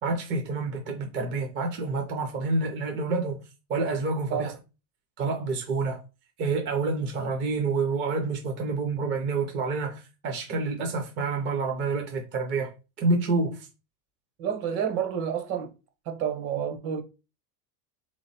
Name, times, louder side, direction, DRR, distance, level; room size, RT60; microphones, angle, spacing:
voice 1, 0.0-3.4 3.7-4.5 5.2-6.0 6.4-12.7 13.0-13.6, right 3 dB, 25° right, 0.6 m, -28 dB
voice 2, 14.4-15.7 16.1-17.0, right 8 dB, 50° right, 1.1 m, -29 dB
3.8 x 3.1 x 4.1 m
cardioid pair, 165°, 48 cm